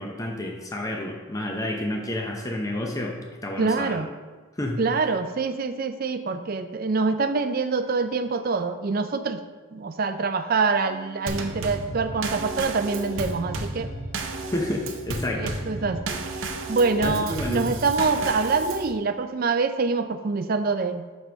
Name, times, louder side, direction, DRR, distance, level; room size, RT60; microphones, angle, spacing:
voice 1, 0.0-4.0 4.6-4.8 14.5-15.6 17.0-17.7, left 1 dB, 15° left, 1 dB, 0.7 m, -30 dB
voice 2, 3.6-4.1 4.8-9.4 9.7-13.9 15.4-21.0, right 4 dB, 45° right, 9 dB, 0.4 m, -25 dB
Bowed string instrument, 10.8-16.2, right 1 dB, 55° left, 1.4 m, -49 dB
Drum kit / Snare drum / Bass drum, 11.3-18.9, right 2 dB, 65° right, 0.7 m, -33 dB
6.1 x 5.4 x 5.0 m, 1.4 s
head